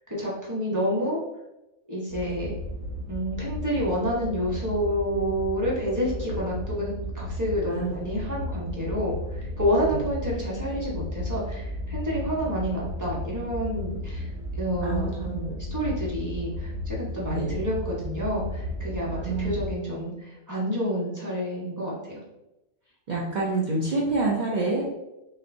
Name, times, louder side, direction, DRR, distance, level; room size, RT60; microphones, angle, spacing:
voice 1, 0.1-1.2 1.9-2.5 3.1-14.3 14.6-22.2, equal, 15° right, -5 dB, 1.0 m, -29 dB
sound 1, 2.1-19.7, left 1 dB, 80° right, 1.2 m, -34 dB
voice 2, 14.8-15.3 17.2-17.5 19.2-19.6 23.1-24.9, right 3 dB, 50° right, -4 dB, 0.5 m, -27 dB
4.1 x 3.4 x 2.7 m, 0.94 s
omnidirectional pair, 1.4 m